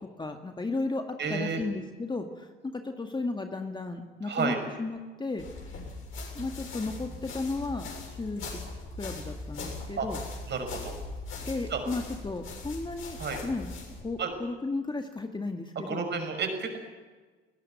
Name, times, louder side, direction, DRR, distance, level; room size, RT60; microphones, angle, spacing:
voice 1, 0.2-5.5 6.3-8.6 9.0-10.2 11.5-13.7 14.0-16.0, left 3 dB, 15° left, 5 dB, 1.8 m, -34 dB
voice 2, 1.2-1.6 4.3-4.6 10.0-10.1 10.5-11.0 11.7-11.8 13.2-13.4 14.2-14.3 15.9-16.8, right 5 dB, 35° right, 5 dB, 6.1 m, -31 dB
sound 1, 5.4-14.0, left 3 dB, 45° left, 7.3 m, -40 dB
21.5 x 19.0 x 9.4 m, 1.3 s
figure-of-eight pair, 55°, 29 cm